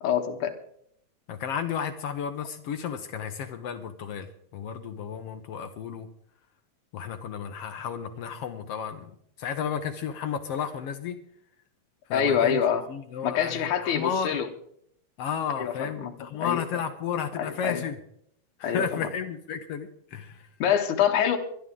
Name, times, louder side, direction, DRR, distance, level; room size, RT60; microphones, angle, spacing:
voice 1, 0.0-0.5 12.1-12.8 13.2-14.5 15.6-16.1 16.4-16.6 17.4-17.8 18.6-19.0 20.6-21.4, left 8 dB, 85° left, 3 dB, 2.7 m, -25 dB
voice 2, 1.3-6.1 6.9-9.1 9.4-11.2 12.1-12.6 12.9-14.4 15.2-18.0 18.6-20.5, left 7 dB, 65° left, 8 dB, 1.7 m, -33 dB
23.0 x 11.0 x 3.8 m, 0.69 s
omnidirectional pair, 3.3 m